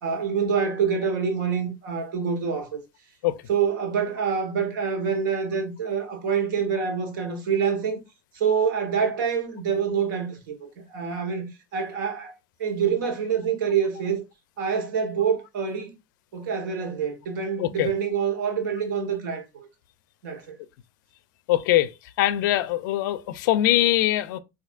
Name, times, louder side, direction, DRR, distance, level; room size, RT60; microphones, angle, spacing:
voice 1, 0.0-2.8 3.5-8.0 8.3-14.2 14.6-16.0 16.3-19.7 20.2-20.5, right 6 dB, 85° right, 1.1 m, -26 dB
voice 2, 17.6-17.9 21.5-21.9 22.2-24.4, left 14 dB, 85° left, 0.4 m, -22 dB
4.2 x 2.6 x 2.4 m
supercardioid pair, 110°, 10 cm